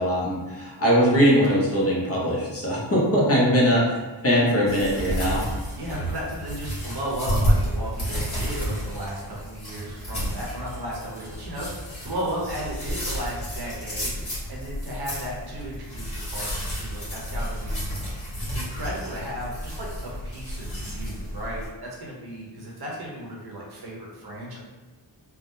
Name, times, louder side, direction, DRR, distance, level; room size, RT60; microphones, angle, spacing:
voice 1, 0.0-3.9 4.2-5.4, equal, 30° left, -5 dB, 0.8 m, -21 dB
sound 1, 4.7-21.7, equal, 55° left, 1.4 m, -31 dB
voice 2, 5.7-18.0 18.5-24.6, right 1 dB, 55° right, -4 dB, 0.9 m, -35 dB
3.4 x 2.1 x 2.6 m, 1.3 s
wide cardioid pair, 100°, 46 cm